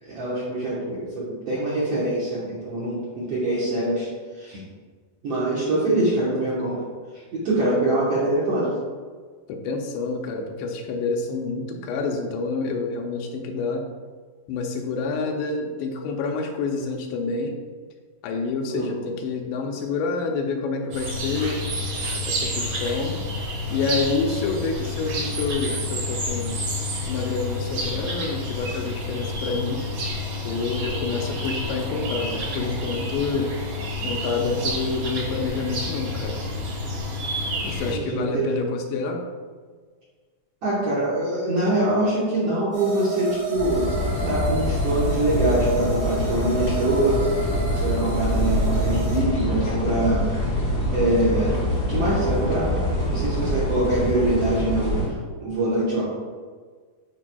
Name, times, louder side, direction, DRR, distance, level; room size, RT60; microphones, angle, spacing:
voice 1, 0.0-4.1 4.3-4.6 5.2-6.8 7.3-8.8 18.7-19.0 37.8-38.6 40.6-43.8 44.2-47.2 47.7-50.3 50.9-51.6 51.9-52.8 53.0-55.1 55.4-56.0, right 1 dB, 75° right, -8 dB, 1.3 m, -24 dB
voice 2, 9.5-13.9 14.5-17.6 18.2-21.7 22.3-23.2 23.7-26.7 27.1-29.9 30.5-33.5 34.0-36.4 37.6-39.3, left 4 dB, 85° left, 2 dB, 2.7 m, -28 dB
sound 1, 20.9-37.9, left 1 dB, 60° right, 2.2 m, -29 dB
sound 2, 42.7-49.2, right 2 dB, 45° right, 1.1 m, -33 dB
sound 3, 43.5-55.1, left 1 dB, 40° left, 1.0 m, -25 dB
11.0 x 4.5 x 2.3 m, 1.5 s
omnidirectional pair, 4.7 m